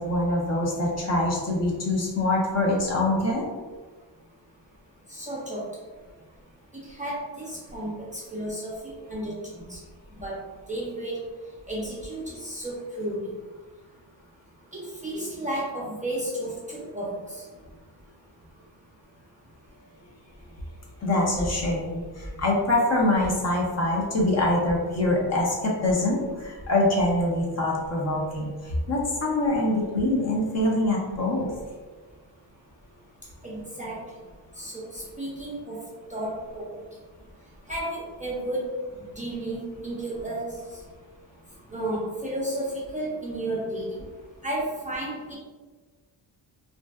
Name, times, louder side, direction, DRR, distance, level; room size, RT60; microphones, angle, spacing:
voice 1, 0.0-3.5 21.0-31.5, left 1 dB, 40° left, -2 dB, 0.6 m, -24 dB
voice 2, 5.1-5.6 6.7-9.8 10.1-10.4 10.7-11.2 11.7-13.2 14.7-17.4 33.4-34.0 34.6-35.8 36.1-36.6 37.7-38.7 39.2-40.6 41.7-44.1 44.4-45.3, right 1 dB, 20° right, -6 dB, 0.4 m, -32 dB
2.5 x 2.1 x 2.2 m, 1.3 s
cardioid pair, 110°, 43 cm